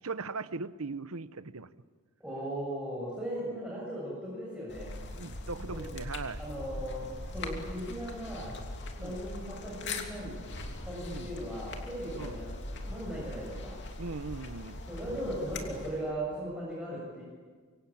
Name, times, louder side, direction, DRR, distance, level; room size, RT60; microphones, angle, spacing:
voice 1, 0.0-1.7 5.1-6.4 9.0-9.2 11.1-11.3 12.2-12.4 14.0-14.8, right 3 dB, 75° right, 14 dB, 1.0 m, -39 dB
voice 2, 2.2-4.9 5.7-5.9 6.4-8.5 9.0-10.3 10.8-13.7 14.9-17.2, right 1 dB, 5° right, -6 dB, 7.2 m, -38 dB
sound 1, 4.7-16.1, left 2 dB, 55° left, 2.9 m, -41 dB
25.5 x 24.5 x 8.8 m, 1.5 s
head